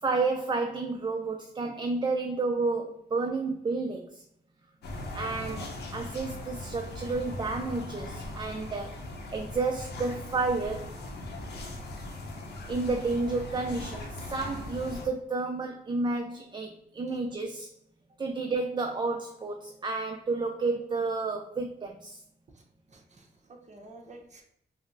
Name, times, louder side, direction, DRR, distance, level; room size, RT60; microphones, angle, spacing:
voice 1, 0.0-4.2 5.1-9.0 9.3-10.9 12.7-17.7 18.2-22.2, right 3 dB, 25° right, 3 dB, 0.4 m, -31 dB
sound 1, 4.8-15.1, left 2 dB, 85° left, 0.7 m, -39 dB
voice 2, 11.0-11.6 17.1-17.2 22.5-22.6 22.9-24.4, right 2 dB, 45° right, 1 dB, 0.9 m, -50 dB
5.0 x 2.0 x 2.6 m, 0.73 s
cardioid pair, 75°, 17 cm